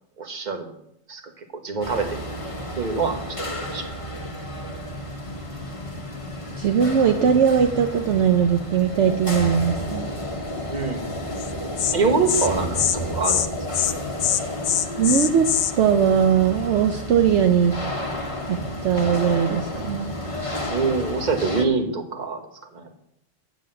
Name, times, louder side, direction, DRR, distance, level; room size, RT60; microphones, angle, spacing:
voice 1, 0.2-0.7 1.1-2.2 2.8-3.8 10.7-11.0 11.9-12.8 13.1-13.5 20.7-22.4 22.7-22.9, right 4 dB, 35° right, 5 dB, 1.3 m, -25 dB
sound 1, 1.8-21.7, left 1 dB, 25° left, 1.2 m, -31 dB
voice 2, 6.6-10.1 15.0-15.5 15.8-17.7 18.5-20.2, right 7 dB, 65° right, 5 dB, 1.0 m, -20 dB
Insect, 11.4-11.5 11.8-11.9 12.3-12.5 12.7-13.0 13.2-13.5 13.7-13.9 14.2-15.7, left 10 dB, 80° left, 1.0 m, -22 dB
8.2 x 7.3 x 7.6 m, 0.77 s
omnidirectional pair, 1.3 m